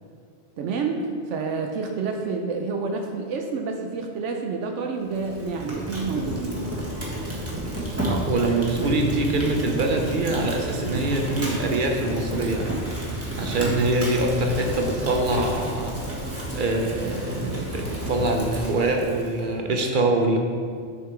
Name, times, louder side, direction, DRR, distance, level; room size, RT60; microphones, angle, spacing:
voice 1, 0.6-6.7, right 4 dB, 80° right, 3 dB, 0.9 m, -29 dB
Fire, 5.1-19.5, right 1 dB, 10° right, 1.3 m, -31 dB
voice 2, 8.1-12.7 13.4-16.0 16.5-20.4, right 2 dB, 50° right, 3 dB, 0.9 m, -24 dB
6.6 x 5.6 x 4.5 m, 2.1 s
omnidirectional pair, 1.2 m